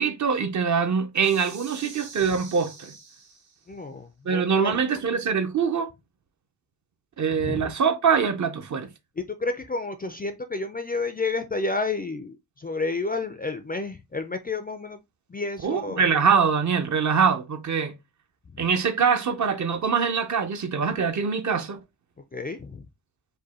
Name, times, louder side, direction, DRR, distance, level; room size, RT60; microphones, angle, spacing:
voice 1, 0.0-2.9 4.2-5.9 7.2-8.9 15.6-17.9 18.6-21.8, right 6 dB, 45° right, 0.6 m, -24 dB
sound 1, 1.2-3.7, right 4 dB, 65° right, 1.5 m, -45 dB
voice 2, 3.7-4.8 7.3-7.7 9.2-15.0 15.3-16.1 18.5-18.6 22.3-22.9, left 3 dB, 25° left, 0.4 m, -30 dB
5.2 x 2.2 x 4.1 m
wide cardioid pair, 170°, 41 cm